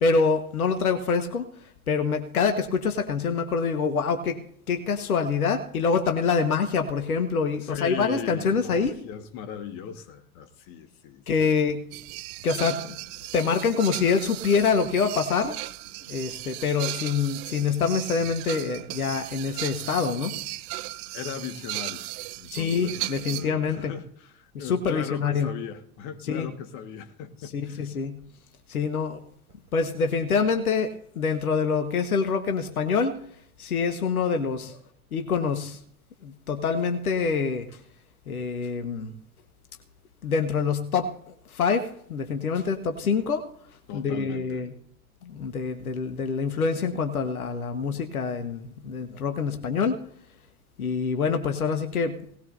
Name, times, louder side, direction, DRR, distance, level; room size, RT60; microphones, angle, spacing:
voice 1, 0.0-1.5 1.9-8.9 11.3-11.8 12.4-13.0 13.3-15.6 16.1-20.3 22.5-23.9 24.5-25.5 26.3-26.5 27.5-28.2 28.7-29.2 29.7-33.2 33.6-34.7 35.1-35.8 36.2-37.7 38.3-39.1 40.2-43.4 43.9-44.7 45.2-50.0 50.8-52.2, left 5 dB, 75° left, 1.6 m, -26 dB
voice 2, 7.6-11.2 21.1-22.1 22.4-27.9 43.9-44.7, left 8 dB, 50° left, 1.8 m, -38 dB
sound 1, 11.9-23.5 27.7-27.8 28.2-28.3 29.5-29.6, right 18 dB, 45° right, 0.8 m, -36 dB
19.0 x 17.5 x 2.7 m
figure-of-eight pair, 80°, 44 cm